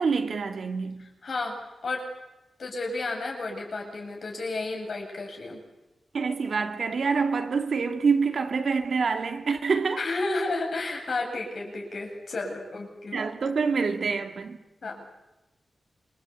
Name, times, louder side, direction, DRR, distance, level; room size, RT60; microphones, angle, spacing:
voice 1, 0.0-1.0 6.1-10.0 13.1-14.6, right 5 dB, 60° right, 2.6 m, -26 dB
voice 2, 1.2-1.6 1.8-2.0 2.6-5.6 10.0-13.2 14.8-15.1, left 3 dB, 55° left, 7.7 m, -32 dB
28.0 x 25.5 x 8.5 m
wide cardioid pair, 160°, 0 cm